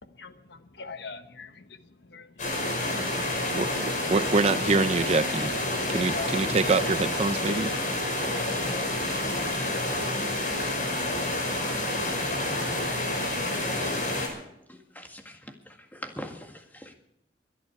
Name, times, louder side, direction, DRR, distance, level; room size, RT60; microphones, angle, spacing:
voice 1, 0.0-2.7 6.1-6.5 6.9-7.0, left 4 dB, 70° left, 9 dB, 1.3 m, -42 dB
sound 1, 2.4-14.3, left 1 dB, 45° left, 5.6 m, -29 dB
voice 2, 3.5-5.5 5.9-7.7, right 3 dB, 35° right, 13 dB, 0.6 m, -25 dB
voice 3, 14.7-16.9, equal, 10° left, 4 dB, 1.9 m, -43 dB
23.5 x 11.0 x 4.7 m, 0.77 s
head